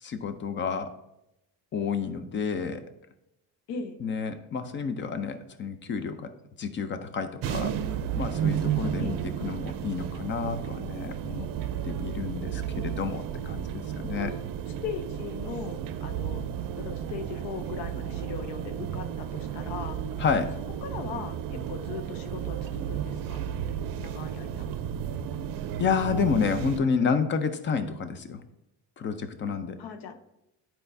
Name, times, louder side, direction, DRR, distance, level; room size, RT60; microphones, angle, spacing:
voice 1, 0.0-0.9 1.7-2.9 4.0-7.8 8.2-11.5 11.8-14.3 20.2-20.6 25.8-28.4 29.0-29.8, left 5 dB, 30° left, 10 dB, 0.5 m, -30 dB
voice 2, 3.7-4.0 9.0-9.2 14.2-14.4 14.8-16.4 16.8-20.0 20.8-23.6 24.0-24.7 29.8-30.2, left 6 dB, 80° left, 8 dB, 0.9 m, -39 dB
sound 1, 7.4-26.8, right 9 dB, 60° right, 0.6 m, -33 dB
11.0 x 4.4 x 2.7 m, 0.87 s
cardioid pair, 140°, 39 cm